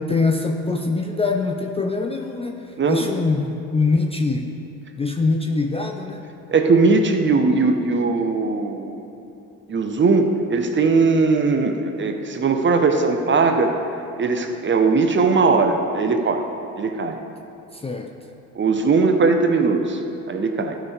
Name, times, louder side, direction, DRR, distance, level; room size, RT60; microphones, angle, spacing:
voice 1, 0.1-4.5 5.0-6.2 17.7-18.1, left 3 dB, 15° left, 2 dB, 0.5 m, -23 dB
voice 2, 2.8-3.1 6.5-9.0 9.7-13.7 14.2-16.4 16.8-17.2 18.6-20.0 20.3-20.8, right 4 dB, 30° right, 6 dB, 0.8 m, -19 dB
12.0 x 5.1 x 3.3 m, 3.0 s
hypercardioid pair, 60°, 40 cm